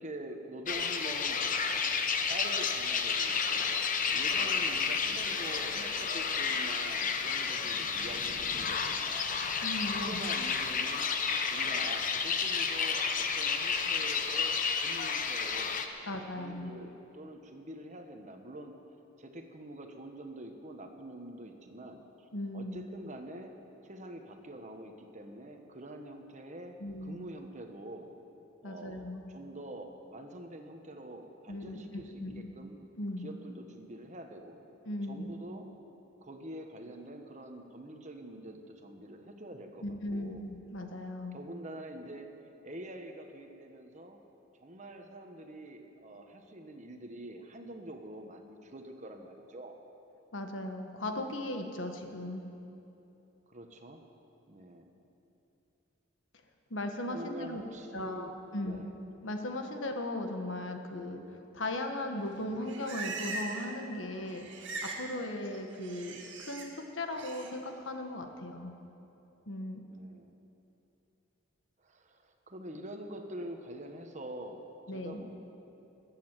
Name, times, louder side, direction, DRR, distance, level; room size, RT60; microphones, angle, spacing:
voice 1, 0.0-3.8 4.1-9.4 9.9-11.1 11.5-18.8 19.2-22.3 22.5-23.5 23.8-28.1 28.6-32.8 33.2-34.6 35.1-35.7 36.2-40.5 41.3-44.2 44.5-49.8 53.5-54.0 54.5-54.9 57.1-58.9 69.9-70.3 71.8-75.3, right 1 dB, 35° right, 4 dB, 1.2 m, -46 dB
sound 1, 0.7-15.9, left 5 dB, 40° left, 0.9 m, -31 dB
voice 2, 9.6-10.2 16.1-16.7 22.3-22.8 26.8-27.3 28.6-29.3 31.5-32.5 33.0-33.3 34.8-35.3 39.8-41.4 50.3-52.4 56.7-57.6 57.9-58.8 59.2-64.5 65.0-68.7 69.5-69.8 74.9-75.2, left 1 dB, 75° left, 5 dB, 1.4 m, -37 dB
Livestock farm animals working animals, 62.3-63.8 64.0-65.1 65.3-66.7 67.1-67.5, right 3 dB, 65° right, 2.1 m, -41 dB
21.0 x 8.6 x 7.5 m, 3.0 s
head